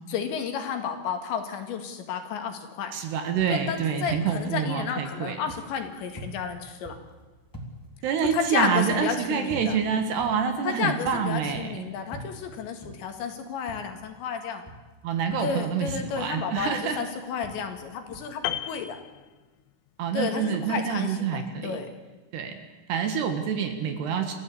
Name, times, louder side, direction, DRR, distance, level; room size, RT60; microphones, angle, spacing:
voice 1, 0.1-2.9 3.5-7.0 8.2-9.8 10.7-14.6 15.4-19.0 20.1-21.9, left 6 dB, 65° left, 6 dB, 4.0 m, -32 dB
voice 2, 2.9-5.4 8.0-11.9 15.0-17.0 20.0-21.8 22.3-22.6 22.9-24.3, right 7 dB, 65° right, 6 dB, 3.4 m, -27 dB
sound 1, 3.0-14.3 14.6-18.2, equal, 5° left, 2.4 m, -47 dB
Piano, 18.4-19.9 20.2-20.4, left 12 dB, 85° left, 3.5 m, -35 dB
28.5 x 15.0 x 8.5 m, 1.3 s
omnidirectional pair, 5.8 m